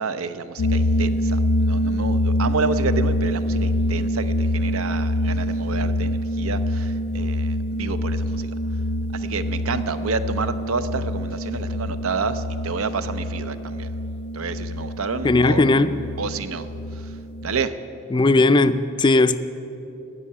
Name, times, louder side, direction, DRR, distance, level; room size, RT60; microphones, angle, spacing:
voice 1, 0.0-8.5 9.1-13.9 14.3-15.6 16.2-16.7 16.9-17.2 17.4-17.7, right 4 dB, 85° right, 0.6 m, -29 dB
sound 1, 0.6-17.6, left 1 dB, 85° left, 0.5 m, -25 dB
voice 2, 15.2-15.9 18.1-19.4, left 2 dB, 20° left, 0.3 m, -17 dB
15.5 x 5.6 x 9.8 m
head